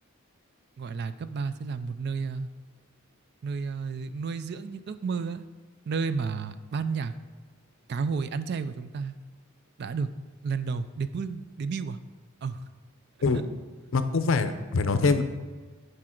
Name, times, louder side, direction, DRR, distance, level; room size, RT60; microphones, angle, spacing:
voice 1, 0.8-2.5 3.4-5.4 5.9-7.1 7.9-9.1 9.8-10.1 10.4-12.0 12.4-12.6 13.3-13.4, right 5 dB, 50° right, 12 dB, 0.3 m, -31 dB
voice 2, 13.9-15.2, left 4 dB, 65° left, 10 dB, 0.5 m, -24 dB
8.5 x 4.9 x 4.4 m, 1.4 s
head